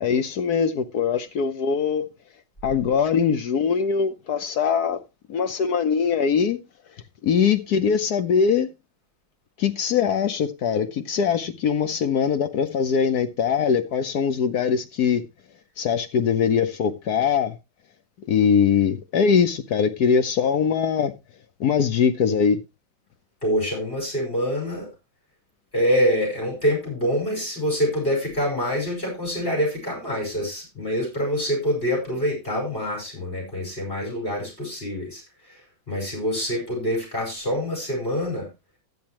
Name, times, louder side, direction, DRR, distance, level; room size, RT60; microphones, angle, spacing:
voice 1, 0.0-2.1 2.6-5.0 5.3-6.6 7.2-8.7 9.6-15.2 15.8-17.5 18.3-21.1 21.6-22.6, left 6 dB, 60° left, 1.1 m, -22 dB
voice 2, 23.4-24.9 25.7-35.6 35.9-38.5, equal, 25° left, 5.4 m, -25 dB
12.0 x 9.6 x 3.0 m
omnidirectional pair, 2.2 m